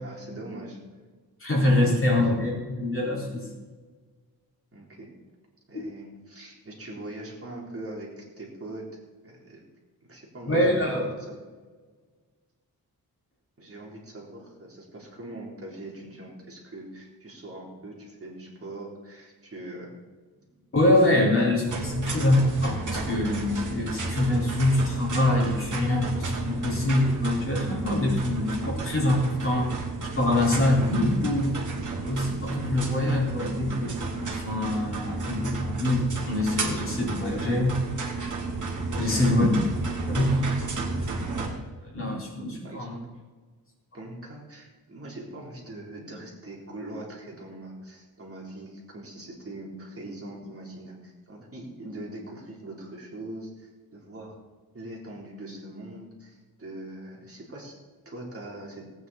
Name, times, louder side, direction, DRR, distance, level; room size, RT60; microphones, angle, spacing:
voice 1, 0.0-0.8 1.5-2.2 4.7-5.1 5.7-8.9 9.2-9.6 10.0-11.4 13.6-19.9 20.4-20.5 39.1-39.3 42.6-43.1 43.9-54.4 54.7-57.8 58.1-58.9, right 1 dB, 35° right, -2 dB, 3.7 m, -42 dB
voice 2, 1.4-3.5 5.7-5.9 10.5-11.0 20.7-29.9 30.1-31.5 32.0-37.8 39.0-39.5 40.1-40.6 41.1-41.6 41.8-43.0, left 1 dB, 35° left, -3 dB, 4.4 m, -25 dB
sound 1, 21.7-41.5, right 3 dB, 50° right, 2.7 m, -32 dB
19.0 x 9.5 x 4.2 m, 1.4 s
wide cardioid pair, 110°, 38 cm